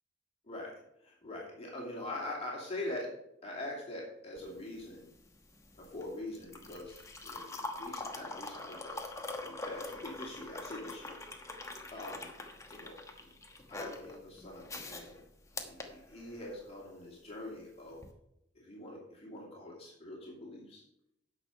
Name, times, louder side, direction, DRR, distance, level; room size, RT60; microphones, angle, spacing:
voice 1, 0.5-3.1 3.4-5.1 5.7-9.0 9.4-11.2 11.9-12.3 12.7-13.3 13.7-15.2 15.6-18.0 18.5-20.8, left 1 dB, 35° left, -3 dB, 2.7 m, -44 dB
sound 1, 4.4-16.7 17.9-18.1, left 2 dB, 15° left, 1.2 m, -44 dB
9.7 x 6.5 x 5.6 m, 0.81 s
head